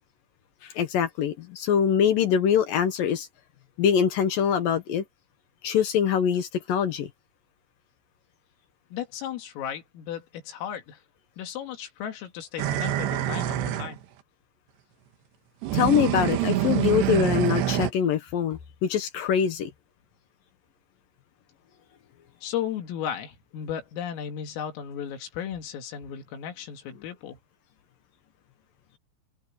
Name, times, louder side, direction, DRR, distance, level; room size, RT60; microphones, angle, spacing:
voice 1, 0.6-3.3 3.8-5.0 5.6-7.1 15.7-19.7, left 8 dB, 70° left, 2.2 m, -24 dB
voice 2, 8.9-11.0 11.4-14.0 22.4-27.4, left 9 dB, 90° left, 5.3 m, -35 dB
sound 1, 12.6-14.0 15.6-17.9, right 12 dB, 70° right, 3.1 m, -26 dB
open air
omnidirectional pair, 5.8 m